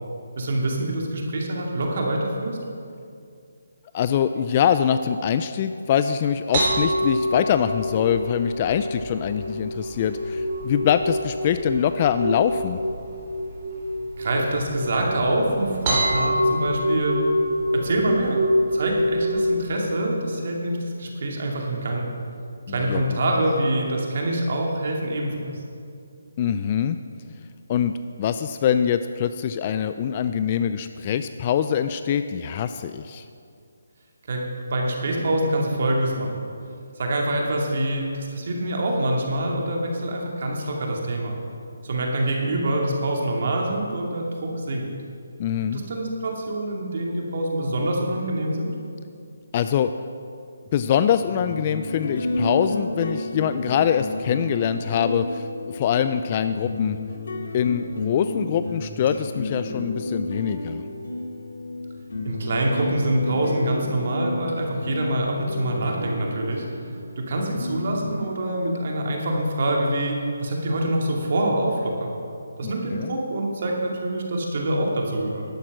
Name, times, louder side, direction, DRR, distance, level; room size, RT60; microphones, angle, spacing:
voice 1, 0.4-2.6 14.2-17.2 17.7-18.4 18.7-22.1 22.7-25.5 34.3-36.5 37.0-41.3 41.8-44.9 45.7-48.7 62.2-66.6 67.2-72.1 72.6-75.4, right 1 dB, 50° right, 0 dB, 2.4 m, -25 dB
voice 2, 3.9-12.8 22.7-23.2 26.4-27.0 27.7-27.9 28.2-33.2 45.4-45.8 49.5-49.9 50.7-57.0 57.5-60.8 72.6-73.2, left 8 dB, 30° left, 10 dB, 0.3 m, -24 dB
sound 1, 6.5-19.6, equal, 30° right, 3.4 m, -26 dB
sound 2, 51.1-68.2, left 1 dB, 70° left, 2.0 m, -32 dB
11.5 x 8.8 x 6.1 m, 2.4 s
hypercardioid pair, 160°, 0 cm